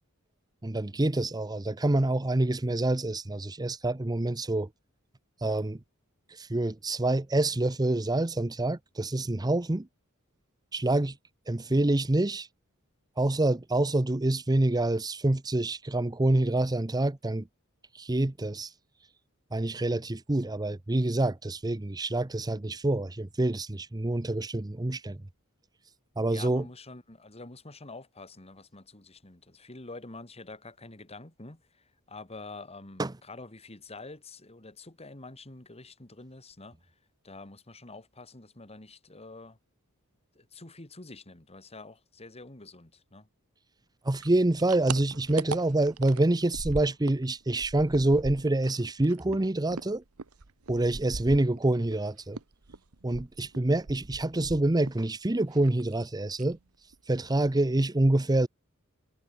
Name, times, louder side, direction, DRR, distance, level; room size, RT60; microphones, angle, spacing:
voice 1, 0.6-4.7 5.4-5.8 6.3-9.9 10.7-11.1 11.5-12.5 13.2-17.5 17.9-18.7 19.5-25.2 26.2-26.6 33.0-33.1 44.0-50.0 50.7-52.4 53.0-56.6 57.1-58.5, right 2 dB, 20° right, 0.7 m, -27 dB
voice 2, 26.3-36.9 37.2-39.6 40.3-43.3, left 3 dB, 30° left, 2.3 m, -47 dB
sound 1, 44.2-47.3 47.5-52.0 52.3-55.1 55.3-56.0 56.3-56.6 56.9-57.0 57.3-57.9, right 4 dB, 85° right, 1.2 m, -40 dB
head